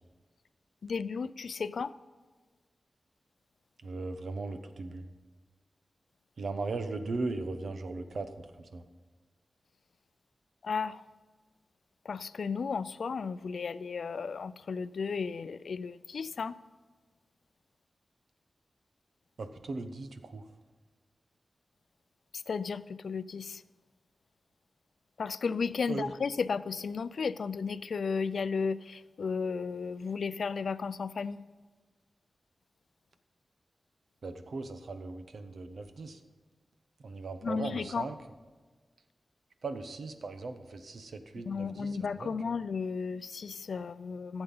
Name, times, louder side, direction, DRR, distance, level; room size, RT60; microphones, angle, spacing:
voice 1, 0.8-1.9 10.6-11.0 12.0-16.6 22.3-23.6 25.2-31.4 37.4-38.1 41.5-44.4, left 5 dB, 85° left, 15 dB, 0.4 m, -34 dB
voice 2, 3.8-5.1 6.4-8.8 19.4-20.4 25.9-26.1 34.2-36.2 37.0-38.1 39.6-41.9 42.2-42.3, right 3 dB, 80° right, 8 dB, 1.0 m, -38 dB
15.5 x 8.0 x 5.5 m, 1.4 s
wide cardioid pair, 95°, 0 cm